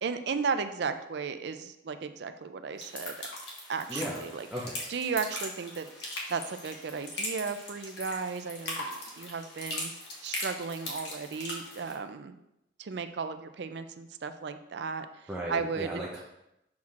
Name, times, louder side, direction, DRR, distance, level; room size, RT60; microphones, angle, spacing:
voice 1, 0.0-3.3 3.7-4.5 4.9-9.9 10.2-12.3 12.8-16.0, right 5 dB, 60° right, 9 dB, 0.4 m, -35 dB
sound 1, 2.8-11.9, left 1 dB, 60° left, 1.5 m, -40 dB
voice 2, 3.9-4.2 4.5-4.8 15.3-16.2, right 1 dB, 5° right, -5 dB, 0.6 m, -36 dB
7.1 x 6.1 x 2.5 m, 0.86 s
head